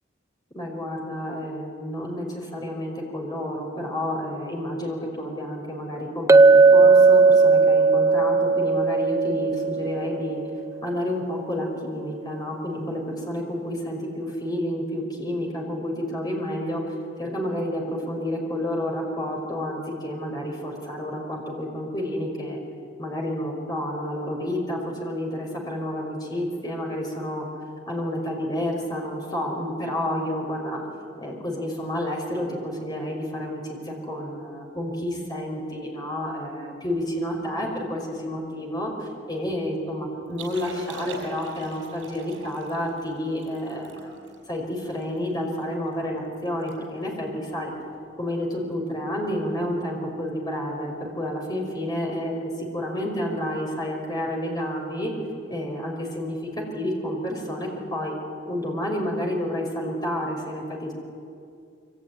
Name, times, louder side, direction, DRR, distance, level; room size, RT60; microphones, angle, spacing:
voice 1, 0.5-10.4 10.8-16.8 17.2-22.6 23.0-27.5 27.9-30.8 31.2-44.1 44.5-47.7 48.2-55.1 55.5-56.4 56.7-58.1 58.5-60.9, left 1 dB, 20° left, 1 dB, 5.4 m, -30 dB
Chink clink, 6.3-10.5, right 4 dB, 15° right, 0.6 m, -16 dB
Liquid, 40.3-45.6 46.1-46.2 46.5-46.8 47.0-47.3 47.9-48.1 49.6-49.7, right 4 dB, 80° right, 5.8 m, -42 dB
26.0 x 24.0 x 9.5 m, 2.4 s
head